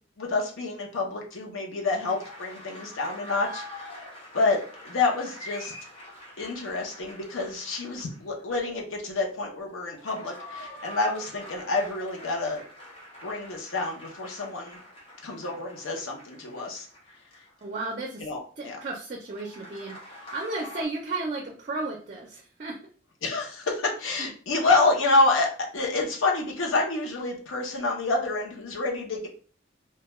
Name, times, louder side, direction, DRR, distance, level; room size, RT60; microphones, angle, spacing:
voice 1, 0.2-4.1 4.3-4.6 4.8-5.7 6.4-12.6 13.2-14.8 15.2-16.9 18.2-18.8 23.2-29.3, left 3 dB, 85° left, 0 dB, 0.7 m, -28 dB
sound 1, 1.8-8.4 9.7-18.1 19.3-20.9, left 1 dB, 30° left, 0.7 m, -45 dB
voice 2, 17.6-18.3 18.6-22.8 24.2-24.3, right 2 dB, 35° right, 0 dB, 0.4 m, -34 dB
2.3 x 2.2 x 3.0 m, 0.41 s
head